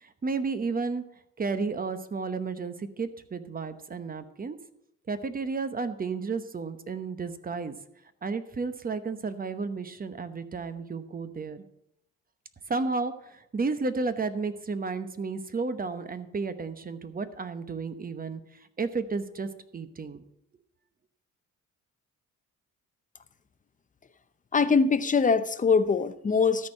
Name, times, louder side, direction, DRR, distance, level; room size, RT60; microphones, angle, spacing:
voice 1, 0.0-1.0 1.4-4.6 5.1-7.8 8.2-11.6 12.7-18.4 18.8-20.2, right 4 dB, 30° right, 11 dB, 0.9 m, -32 dB
voice 2, 24.5-26.7, left 5 dB, 25° left, 12 dB, 0.7 m, -23 dB
13.0 x 4.6 x 7.5 m, 0.77 s
cardioid pair, 90°, 30 cm